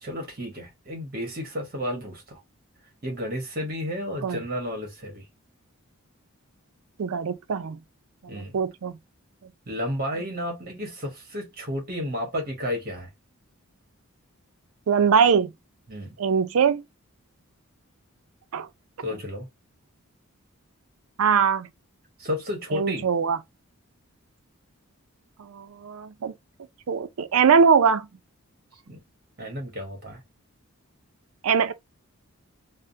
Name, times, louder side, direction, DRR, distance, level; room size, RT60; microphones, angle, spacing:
voice 1, 0.0-2.4 3.0-5.2 8.3-8.5 9.7-13.1 15.9-16.2 19.0-19.5 22.2-23.1 28.9-29.0 29.4-30.2, left 1 dB, 45° right, 1.2 m, -32 dB
voice 2, 7.0-7.8 8.2-8.9 14.9-15.5 16.2-16.8 18.5-18.7 21.2-21.7 22.7-23.4 25.4-26.3 26.9-28.1 31.4-31.7, right 6 dB, 80° right, 0.4 m, -22 dB
3.4 x 2.0 x 2.6 m
head